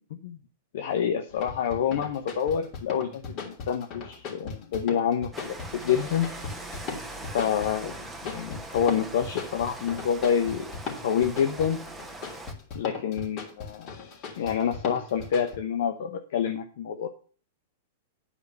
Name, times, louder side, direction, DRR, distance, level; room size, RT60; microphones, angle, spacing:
voice 1, 0.7-6.3 7.3-7.9 8.2-10.7 11.0-11.8 12.7-13.9 14.4-17.1, left 8 dB, 65° left, 6 dB, 1.0 m, -27 dB
sound 1, 1.3-15.6, left 5 dB, 45° left, 3.3 m, -38 dB
Rain, 5.3-12.5, right 2 dB, 5° right, 1.3 m, -41 dB
10.0 x 5.0 x 6.8 m, 0.42 s
hypercardioid pair, 115°, 0 cm